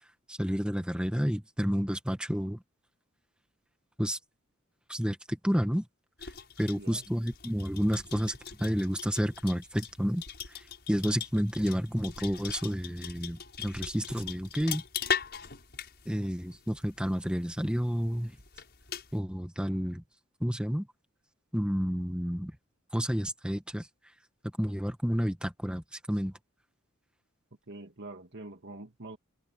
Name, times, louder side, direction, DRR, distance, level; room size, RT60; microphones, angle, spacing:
voice 1, 0.3-2.6 4.0-4.2 4.9-5.8 6.6-10.2 10.9-14.8 16.1-18.3 19.1-20.0 20.4-20.9 21.5-22.5 22.9-23.9 24.6-26.3, equal, 5° right, 1.8 m, -30 dB
sound 1, 6.2-19.2, left 8 dB, 50° left, 6.5 m, -40 dB
voice 2, 27.7-29.2, right 2 dB, 55° right, 1.9 m, -45 dB
head